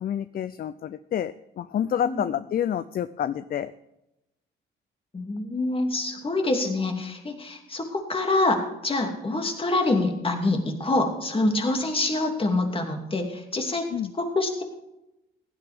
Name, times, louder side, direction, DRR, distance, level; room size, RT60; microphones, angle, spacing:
voice 1, 0.0-3.7 13.9-14.1, left 9 dB, 50° left, 14 dB, 0.5 m, -28 dB
voice 2, 5.1-13.9 14.2-14.6, left 2 dB, 25° left, 3 dB, 2.7 m, -26 dB
16.0 x 11.0 x 3.6 m, 0.91 s
cardioid pair, 90°, 20 cm